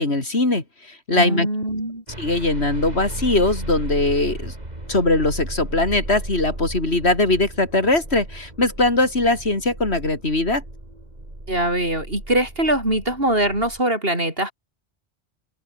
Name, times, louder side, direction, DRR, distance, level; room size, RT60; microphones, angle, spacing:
voice 1, 0.0-1.5 2.2-4.5 4.9-10.6, left 2 dB, 65° left, 4.3 m, -21 dB
voice 2, 1.1-2.0 11.5-14.5, right 1 dB, 55° right, 8.2 m, -22 dB
sound 1, 2.1-13.8, right 1 dB, 40° right, 5.0 m, -35 dB
omnidirectional pair, 1.2 m